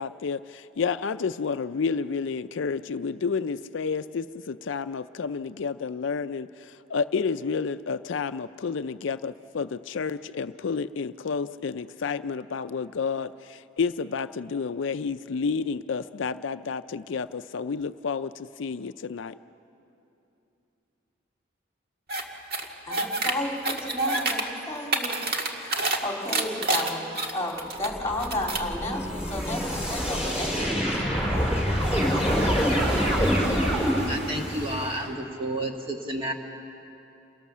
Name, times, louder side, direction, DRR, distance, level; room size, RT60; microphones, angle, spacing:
voice 1, 0.0-19.4, left 5 dB, 70° left, 11 dB, 0.4 m, -30 dB
sound 1, 22.1-22.2 22.5-23.3 23.6-24.4 24.8-26.0 26.3-27.9 28.2-28.7, right 2 dB, 50° right, 1.8 m, -27 dB
voice 2, 22.8-31.7, left 1 dB, 15° left, 1 dB, 2.7 m, -33 dB
sound 2, 27.9-35.0, equal, 5° right, 5.2 m, -26 dB
voice 3, 33.7-36.3, right 1 dB, 30° right, 2 dB, 1.6 m, -32 dB
28.0 x 18.0 x 7.3 m, 2.8 s
head